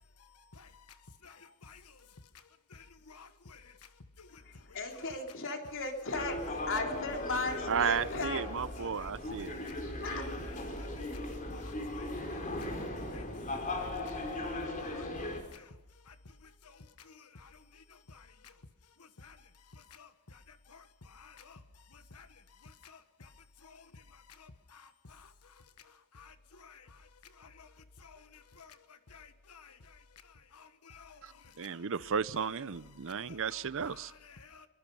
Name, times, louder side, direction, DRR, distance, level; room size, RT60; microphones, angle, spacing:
voice 1, 1.2-1.8 2.7-3.6 4.2-4.3 9.0-9.1 9.4-9.5 10.8-11.2 12.0-12.1 13.1-13.2 13.7-14.2 14.5-15.7 16.1-16.2 17.1-17.5 18.1-18.2 19.2-19.4 19.9-20.4 20.7-20.8 21.1-21.6 22.1-22.3 22.8-23.3 23.6-23.8 24.4-25.3 26.1-26.8 27.4-27.7 28.0-28.7 29.1-29.8 30.5-31.2 33.3-34.7, left 5 dB, 90° left, 1.3 m, -54 dB
voice 2, 4.4-8.5 9.5-9.6 10.0-10.3, left 3 dB, 60° left, 3.6 m, -37 dB
sound 1, 6.1-15.4, left 1 dB, 35° left, 4.2 m, -38 dB
voice 3, 7.7-9.5 31.6-34.1, right 6 dB, 60° right, 0.7 m, -33 dB
25.0 x 22.5 x 5.5 m
head